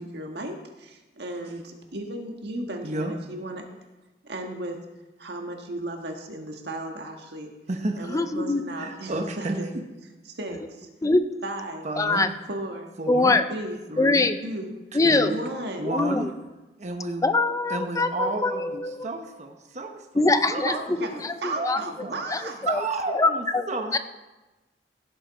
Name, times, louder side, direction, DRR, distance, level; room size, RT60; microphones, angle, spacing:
voice 1, 0.0-3.7 4.2-4.8 5.2-7.5 8.0-9.8 10.2-10.9 11.4-11.9 12.5-12.9 13.5-13.8 14.4-14.7 15.3-15.9 20.6-22.7, right 1 dB, 65° right, 3 dB, 1.7 m, -35 dB
voice 2, 2.8-3.1 7.7-8.1 8.8-9.6 11.8-12.3 13.0-13.4 13.9-14.3 15.0-15.4 15.8-16.3 16.8-17.2 17.7-19.9 20.5-21.0 21.5-21.8 22.0-22.2 22.6-24.0, right 2 dB, 40° right, 4 dB, 1.0 m, -31 dB
voice 3, 8.1-8.6 11.0-11.2 12.0-12.3 13.1-13.4 14.0-14.4 14.9-15.3 15.8-16.3 17.2-19.1 20.2-20.7 21.0-21.3 21.6-22.8 23.1-23.7 23.9-24.0, left 2 dB, 20° left, 10 dB, 0.5 m, -23 dB
16.0 x 7.9 x 4.1 m, 1.1 s
head